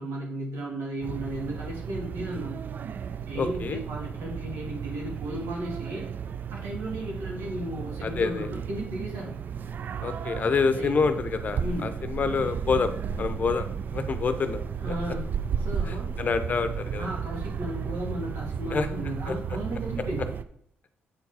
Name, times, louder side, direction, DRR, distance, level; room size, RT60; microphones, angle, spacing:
voice 1, 0.0-2.6 3.3-6.1 6.5-9.3 10.8-11.0 11.6-11.9 14.8-15.3 15.6-16.1 17.0-20.3, right 1 dB, 85° right, -2 dB, 2.2 m, -35 dB
sound 1, 1.0-20.4, right 7 dB, 50° right, 0.3 m, -34 dB
voice 2, 3.4-3.8 8.0-8.5 10.0-12.9 13.2-13.7 13.9-14.6 15.9-17.1 18.7-18.9 19.3-19.4, left 5 dB, 40° left, 10 dB, 0.6 m, -27 dB
7.7 x 4.6 x 4.1 m, 0.68 s
cardioid pair, 115°, 4 cm